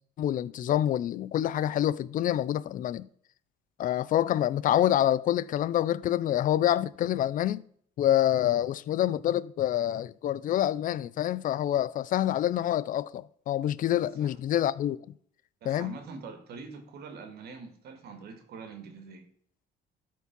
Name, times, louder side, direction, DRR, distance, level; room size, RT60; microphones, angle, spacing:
voice 1, 0.2-3.1 3.8-7.6 8.0-15.0 15.6-15.9, left 12 dB, 55° left, 0.5 m, -27 dB
voice 2, 13.9-14.3 15.6-19.2, right 4 dB, 70° right, 2.2 m, -44 dB
12.5 x 4.6 x 5.3 m
cardioid pair, 110°, 17 cm